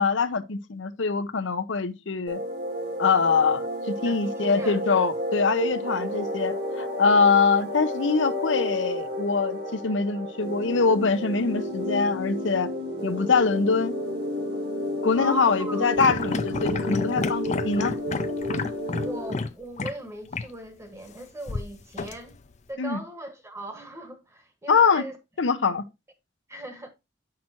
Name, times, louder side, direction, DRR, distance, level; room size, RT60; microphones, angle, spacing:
voice 1, 0.0-2.4 3.0-12.7 13.0-13.9 15.0-17.9 22.8-23.0 24.7-25.0 25.4-25.8, left 5 dB, 80° left, 0.7 m, -23 dB
sound 1, 2.3-19.3, left 1 dB, 55° right, 2.0 m, -31 dB
voice 2, 4.0-4.8 15.1-15.9 19.0-22.4 22.7-25.2 26.5-26.9, right 1 dB, 15° right, 1.2 m, -39 dB
sound 2, 15.9-19.5 19.8-19.9 20.3-20.5 21.5-22.6, left 3 dB, 40° left, 0.5 m, -30 dB
8.7 x 5.9 x 2.9 m
head